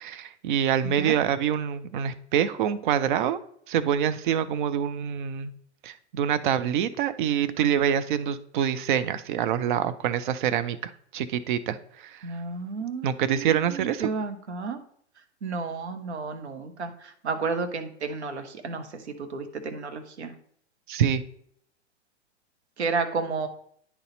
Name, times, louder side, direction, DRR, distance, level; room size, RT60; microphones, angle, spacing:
voice 1, 0.0-3.4 3.7-5.5 5.8-10.8 11.1-12.2 13.0-14.1 20.9-21.2, right 9 dB, 45° right, 12 dB, 0.6 m, -26 dB
voice 2, 12.2-14.8 15.4-18.9 19.2-20.3 22.8-23.5, right 4 dB, 70° right, 7 dB, 1.1 m, -32 dB
9.6 x 4.1 x 3.9 m, 0.65 s
figure-of-eight pair, 100°, 35 cm